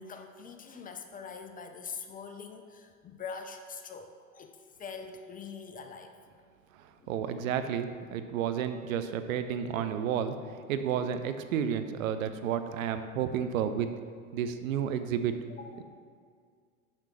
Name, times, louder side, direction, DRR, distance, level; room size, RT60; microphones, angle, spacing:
voice 1, 0.0-6.4 7.0-7.1 9.0-9.1 15.5-15.8, left 5 dB, 20° left, 6 dB, 0.7 m, -44 dB
voice 2, 6.8-10.4 10.7-13.9 14.3-15.3, right 8 dB, 65° right, 9 dB, 0.7 m, -31 dB
6.5 x 6.1 x 5.6 m, 2.1 s
hypercardioid pair, 85°, 43 cm